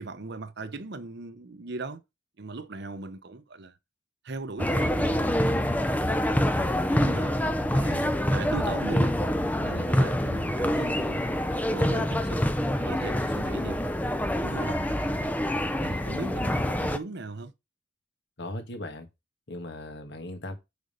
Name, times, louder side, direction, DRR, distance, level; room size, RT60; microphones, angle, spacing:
voice 1, 0.0-2.0 2.4-3.8 4.2-5.7 6.2-9.2 9.6-11.3 11.7-12.4 12.8-14.0 14.4-15.3 15.8-17.5, right 3 dB, 55° right, 0.8 m, -39 dB
sound 1, 4.6-17.0, left 1 dB, 10° left, 0.6 m, -26 dB
voice 2, 18.4-19.1 19.5-20.5, left 1 dB, 55° left, 1.8 m, -37 dB
6.6 x 5.4 x 5.3 m
head